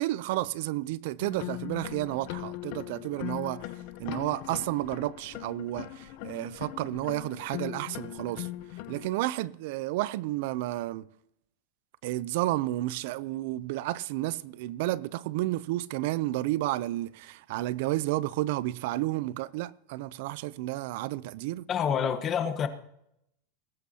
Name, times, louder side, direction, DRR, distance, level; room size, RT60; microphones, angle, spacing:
voice 1, 0.0-8.5 8.9-11.1 12.0-21.7, right 16 dB, 65° right, 0.5 m, -31 dB
sound 1, 1.2-9.1, left 15 dB, 55° left, 0.8 m, -40 dB
voice 2, 21.7-22.7, left 8 dB, 30° left, 1.2 m, -27 dB
20.0 x 11.5 x 2.8 m
supercardioid pair, 140°, 0 cm